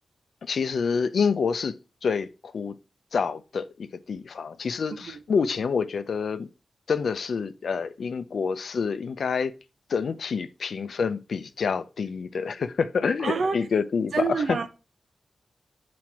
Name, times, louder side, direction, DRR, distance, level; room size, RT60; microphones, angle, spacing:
voice 1, 0.4-1.7 2.0-2.7 3.1-3.7 4.1-6.5 6.9-9.5 9.9-14.6, left 5 dB, 75° left, 0.6 m, -27 dB
voice 2, 13.2-13.7 14.1-14.7, right 5 dB, 75° right, 0.8 m, -28 dB
6.0 x 4.2 x 4.8 m
cardioid pair, 75°, 0 cm